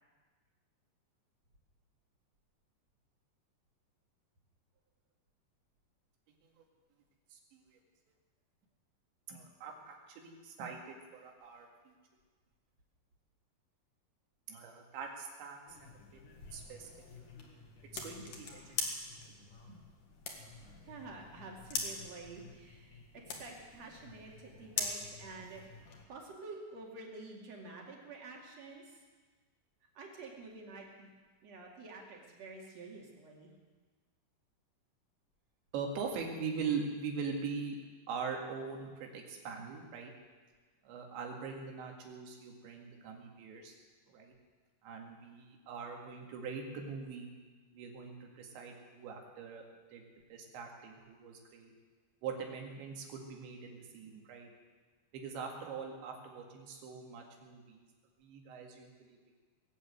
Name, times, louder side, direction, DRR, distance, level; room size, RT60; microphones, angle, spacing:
voice 1, 7.3-7.8 9.3-12.0 14.5-16.9 17.2-17.3 17.9-18.8 19.7-19.8 35.7-37.8 38.1-40.1 40.8-43.8 44.1-44.3 44.8-47.3 47.7-49.6 49.9-50.0 50.3-51.7 52.2-54.5 55.1-57.8 58.2-59.4, right 5 dB, 85° right, 1 dB, 4.3 m, -42 dB
sound 1, 15.7-26.0, left 4 dB, 55° left, 2.8 m, -44 dB
voice 2, 20.8-25.6 26.1-29.0 29.9-31.1 31.4-33.5, right 3 dB, 45° right, -1 dB, 3.0 m, -49 dB
20.0 x 8.4 x 8.1 m, 1.4 s
omnidirectional pair, 5.0 m